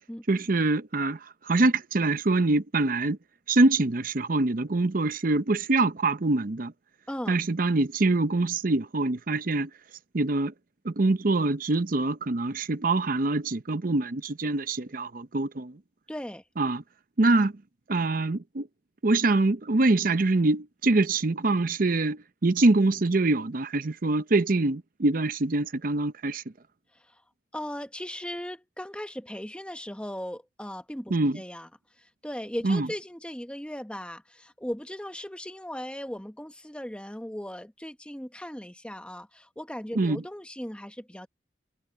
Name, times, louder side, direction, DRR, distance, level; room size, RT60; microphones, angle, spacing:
voice 1, 0.3-3.2 3.5-6.7 7.3-9.7 10.1-10.5 10.8-15.8 16.6-16.8 17.2-17.5 17.9-18.7 19.0-26.4 31.1-31.4 32.6-32.9 40.0-40.2, right 2 dB, 50° right, 0.8 m, -24 dB
voice 2, 16.1-16.4 27.1-27.2 27.5-31.7 32.0-41.3, equal, 5° left, 1.2 m, -38 dB
head